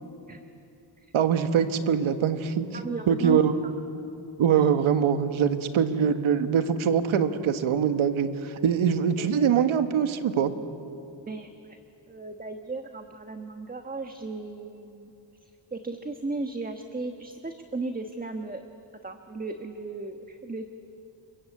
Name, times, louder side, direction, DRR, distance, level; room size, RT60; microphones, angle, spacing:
voice 1, 1.1-3.5 4.4-10.5, right 7 dB, 85° right, 9 dB, 1.6 m, -23 dB
voice 2, 2.7-3.7 4.6-4.7 9.2-9.3 9.6-9.7 11.3-11.8 12.1-15.1 15.4-18.6 19.0-20.7, right 3 dB, 20° right, 6 dB, 1.3 m, -36 dB
29.0 x 23.0 x 8.5 m, 2.8 s
cardioid pair, 110°, 47 cm